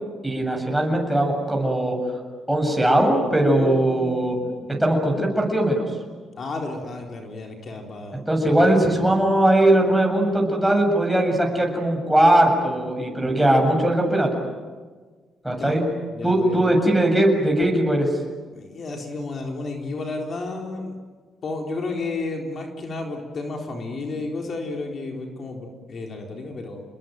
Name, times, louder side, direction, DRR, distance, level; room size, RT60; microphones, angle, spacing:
voice 1, 0.2-2.0 2.5-4.4 4.7-5.8 8.3-14.3 15.4-15.8 16.2-18.1, right 1 dB, 5° right, 0 dB, 7.7 m, -20 dB
voice 2, 3.6-4.7 6.4-8.9 15.6-15.7 16.1-16.7 18.5-21.0 21.4-26.8, left 3 dB, 50° left, 2 dB, 4.2 m, -32 dB
29.5 x 21.0 x 9.5 m, 1.5 s
cardioid pair, 90°, 0 cm